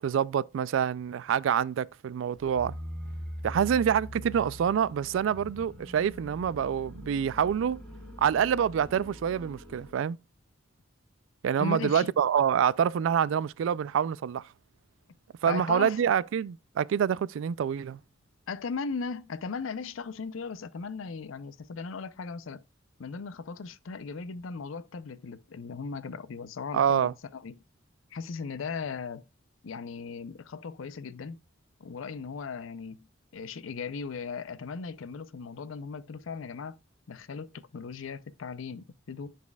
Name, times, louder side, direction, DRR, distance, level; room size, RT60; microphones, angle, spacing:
voice 1, 0.0-2.7 3.4-7.8 8.2-10.2 11.4-14.4 15.4-18.0 26.7-27.1, right 8 dB, 70° right, 0.3 m, -26 dB
sound 1, 2.3-10.0, equal, 5° left, 2.7 m, -43 dB
voice 2, 11.6-12.1 15.5-16.0 18.5-22.6 23.0-27.6 28.1-29.2 29.6-31.4 31.8-36.8 37.1-39.4, left 5 dB, 90° left, 0.5 m, -37 dB
10.5 x 4.2 x 2.3 m
head